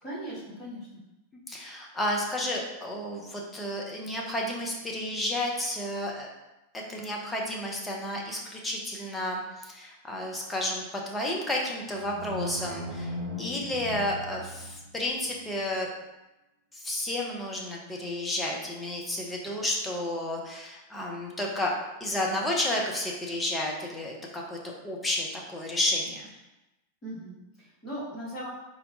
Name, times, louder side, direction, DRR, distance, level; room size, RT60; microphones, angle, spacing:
voice 1, 0.0-1.0 27.0-28.5, right 1 dB, 30° left, -7 dB, 1.3 m, -39 dB
voice 2, 1.5-6.3 6.7-15.9 16.7-21.7 22.0-26.4, left 1 dB, 10° left, -1 dB, 0.6 m, -31 dB
sound 1, 11.7-15.0, left 1 dB, 45° right, 0.9 m, -37 dB
4.0 x 2.2 x 2.7 m, 1.0 s
figure-of-eight pair, 90°, 0 cm